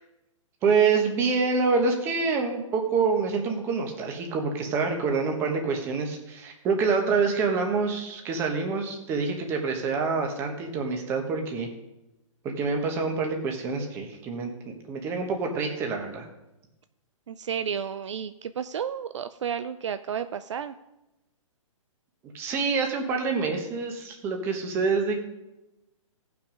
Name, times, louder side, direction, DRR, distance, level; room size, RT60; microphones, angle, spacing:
voice 1, 0.6-11.7 12.4-16.2 22.3-25.2, right 4 dB, 15° right, 3 dB, 1.2 m, -26 dB
voice 2, 17.3-20.7, right 8 dB, 60° right, 11 dB, 0.5 m, -32 dB
16.0 x 6.0 x 5.1 m, 0.94 s
hypercardioid pair, 170°, 17 cm